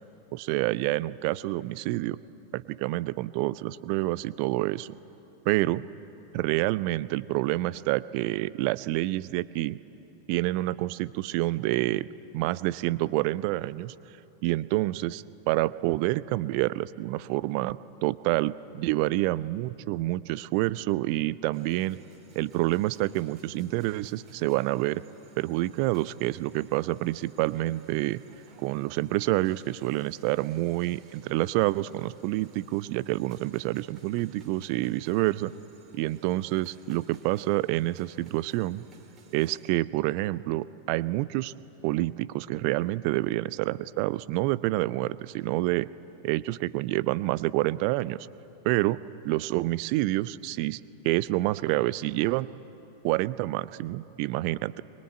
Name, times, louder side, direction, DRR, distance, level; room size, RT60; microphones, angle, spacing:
voice 1, 0.3-2.2 2.5-5.0 5.4-5.8 6.3-9.8 10.3-12.1 12.3-13.9 14.4-17.8 18.0-22.0 22.3-25.0 25.4-28.2 28.6-35.5 35.9-38.8 39.3-41.5 41.8-45.9 46.2-48.2 48.6-49.0 49.2-52.5 53.0-54.8, right 18 dB, 45° right, 18 dB, 0.6 m, -28 dB
sound 1, 21.5-39.7, right 5 dB, 30° right, 3.3 m, -59 dB
24.0 x 23.0 x 9.6 m, 2.9 s
figure-of-eight pair, 90°, 0 cm